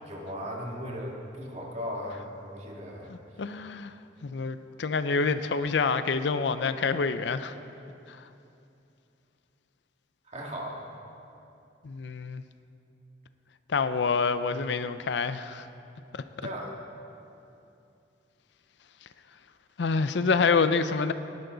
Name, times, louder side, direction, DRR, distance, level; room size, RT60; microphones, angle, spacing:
voice 1, 0.0-3.2 10.3-10.9 16.4-16.8, equal, 40° right, -2 dB, 2.1 m, -37 dB
voice 2, 3.4-3.9 4.2-7.5 11.8-12.4 13.7-15.6 19.8-21.1, left 4 dB, 70° left, 11 dB, 0.5 m, -27 dB
19.0 x 11.5 x 3.9 m, 2.7 s
head